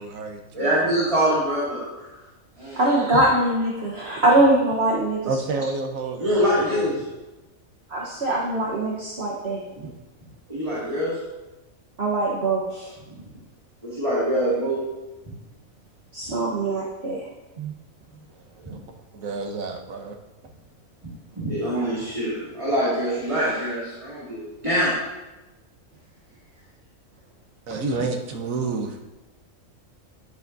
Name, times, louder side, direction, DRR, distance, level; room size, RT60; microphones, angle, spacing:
voice 1, 0.0-0.9 5.2-6.9 18.5-18.8 19.1-20.2 27.7-29.0, right 3 dB, 75° right, 4 dB, 1.3 m, -30 dB
voice 2, 0.5-2.2 2.6-3.0 6.2-7.0 10.5-11.2 13.8-14.8 15.2-15.3 18.6-18.8 21.4-24.9 27.9-28.0, equal, 25° right, -8 dB, 2.1 m, -24 dB
voice 3, 2.7-5.2 7.9-9.6 12.0-12.9 16.1-17.2 17.6-17.7, right 2 dB, 50° right, -4 dB, 1.2 m, -22 dB
11.0 x 8.0 x 2.6 m, 1.1 s
omnidirectional pair, 1.4 m